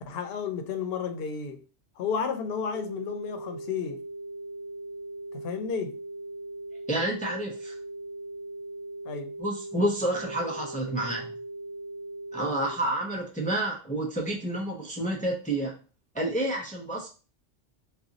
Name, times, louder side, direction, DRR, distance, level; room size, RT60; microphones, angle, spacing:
voice 1, 0.1-1.6 2.0-4.1 5.3-6.0 9.0-9.3, left 6 dB, 65° left, 0.7 m, -32 dB
sound 1, 2.7-12.7, right 2 dB, 55° right, 0.9 m, -39 dB
voice 2, 6.9-7.7 9.4-11.3 12.3-15.7 16.1-17.1, right 1 dB, 10° left, 0.4 m, -29 dB
2.5 x 2.3 x 3.8 m
omnidirectional pair, 1.2 m